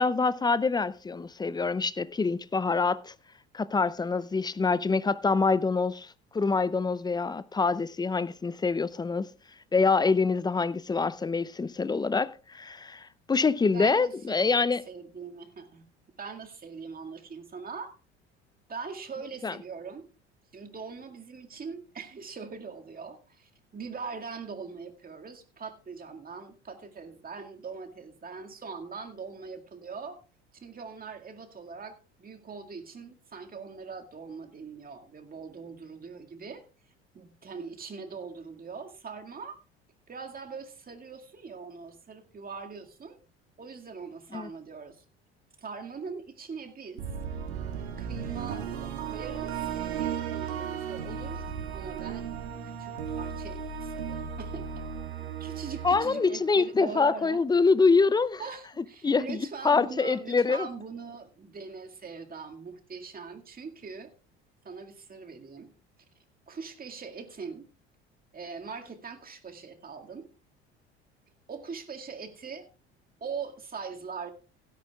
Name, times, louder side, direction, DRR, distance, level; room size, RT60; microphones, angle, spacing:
voice 1, 0.0-3.1 3.5-9.3 9.7-14.8 19.4-19.5 44.3-44.5 55.8-58.4 59.0-60.7, left 4 dB, 15° left, 0.6 m, -25 dB
voice 2, 13.7-14.5 14.9-15.8 16.2-17.9 18.7-20.1 20.5-30.2 30.5-36.6 37.1-39.6 40.1-43.2 43.6-45.0 45.6-47.0 48.0-49.6 49.9-51.4 51.7-54.8 55.2-57.4 58.4-64.1 64.6-65.7 66.5-67.7 68.3-70.3 71.5-72.7 73.2-74.3, right 5 dB, 25° right, 2.1 m, -42 dB
sound 1, 47.0-57.2, right 7 dB, 75° right, 1.7 m, -36 dB
16.5 x 12.5 x 2.4 m
figure-of-eight pair, 65°, 33 cm